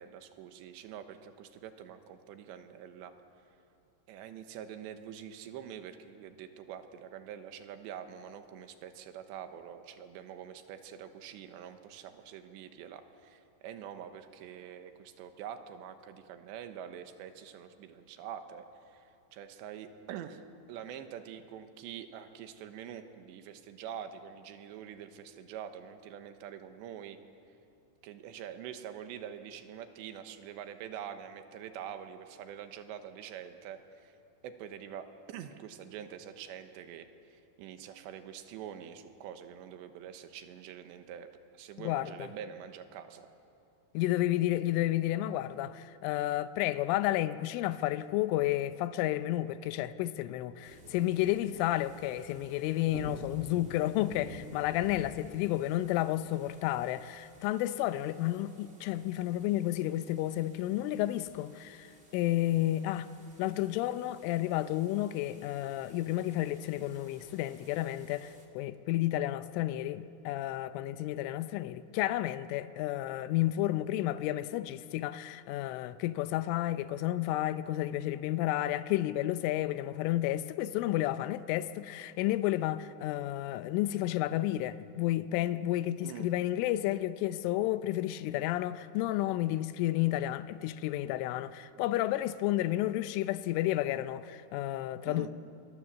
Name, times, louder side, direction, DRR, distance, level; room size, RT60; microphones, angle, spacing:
voice 1, 0.0-3.1 4.1-20.4 20.7-27.2 28.0-34.1 34.4-41.3 41.6-43.3 86.0-86.3 95.1-95.3, right 9 dB, 75° right, 3.2 m, -45 dB
voice 2, 41.8-42.1 43.9-63.1 63.4-95.3, left 14 dB, 90° left, 3.2 m, -31 dB
sound 1, 50.6-68.5, right 1 dB, 45° right, 0.8 m, -52 dB
25.0 x 20.5 x 7.3 m
omnidirectional pair, 5.5 m